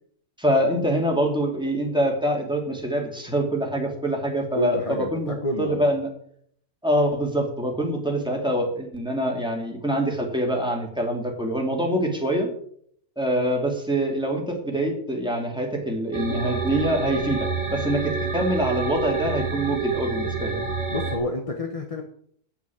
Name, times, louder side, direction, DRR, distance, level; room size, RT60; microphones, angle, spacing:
voice 1, 0.4-6.1 6.8-12.5 13.2-20.6, right 1 dB, 5° right, 1 dB, 2.6 m, -25 dB
voice 2, 4.5-5.9 20.9-22.0, left 1 dB, 25° left, 3 dB, 1.2 m, -29 dB
sound 1, 16.1-21.2, right 4 dB, 20° right, 2.2 m, -28 dB
9.0 x 7.2 x 8.8 m, 0.64 s
omnidirectional pair, 1.6 m